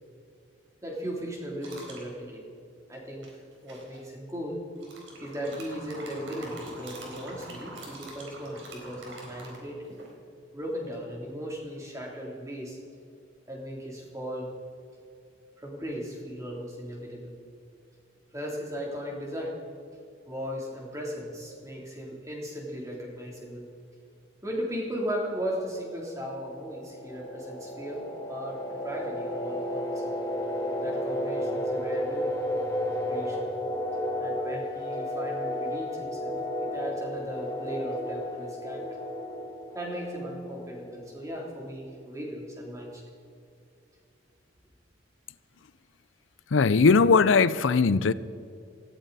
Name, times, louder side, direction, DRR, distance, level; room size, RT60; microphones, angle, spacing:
voice 1, 0.8-2.4 2.9-4.6 5.2-9.8 10.5-12.8 13.5-14.5 15.6-17.4 18.3-19.5 20.3-23.7 24.4-28.0 28.3-30.0 30.8-32.4 33.1-33.5 34.2-39.0 39.7-43.0, equal, 15° right, 3.3 m, -37 dB
sound 1, 1.6-2.1 3.2-4.0 4.8-10.1, right 2 dB, 80° right, 4.1 m, -45 dB
sound 2, 26.4-40.9, left 1 dB, 15° left, 1.9 m, -33 dB
voice 2, 46.5-48.1, left 4 dB, 90° left, 0.5 m, -19 dB
19.0 x 15.5 x 4.1 m
head